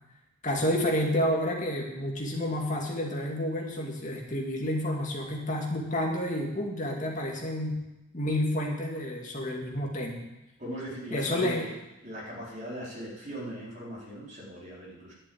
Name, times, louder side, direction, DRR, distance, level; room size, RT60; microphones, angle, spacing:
voice 1, 0.4-7.8 8.1-10.2 11.1-11.7, left 1 dB, 40° left, -1 dB, 2.4 m, -30 dB
voice 2, 10.6-11.7 12.0-15.1, right 1 dB, 35° right, -5 dB, 4.1 m, -39 dB
11.5 x 7.2 x 8.7 m, 0.97 s
head